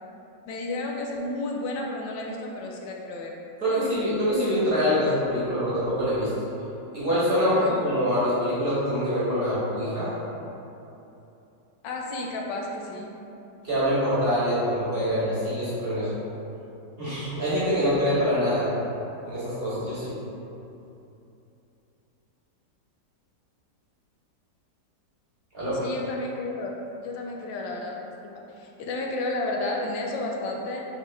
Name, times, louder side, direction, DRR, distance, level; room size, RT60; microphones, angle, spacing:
voice 1, 0.5-4.1 7.5-7.8 11.8-13.1 25.8-26.8 27.0-28.0 28.2-30.9, left 2 dB, 85° left, 0 dB, 1.3 m, -32 dB
voice 2, 3.6-6.3 6.9-10.1 13.6-16.1 17.0-18.7 19.3-20.2 25.5-25.8, equal, 40° right, -11 dB, 1.0 m, -25 dB
4.3 x 3.0 x 3.1 m, 2.9 s
omnidirectional pair, 1.9 m